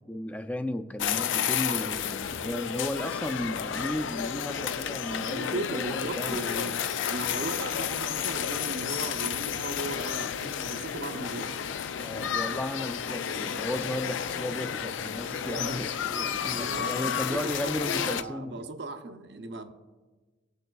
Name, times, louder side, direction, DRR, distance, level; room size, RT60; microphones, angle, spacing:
voice 1, 0.1-6.4 12.0-18.7, left 1 dB, 10° left, 7 dB, 0.4 m, -35 dB
sound 1, 1.0-18.2, left 8 dB, 90° left, 0.4 m, -31 dB
voice 2, 5.3-6.7 7.1-11.6 15.4-15.8 16.6-17.6 17.9-19.7, right 2 dB, 65° right, 6 dB, 0.6 m, -37 dB
19.5 x 6.6 x 2.3 m, 1.3 s
head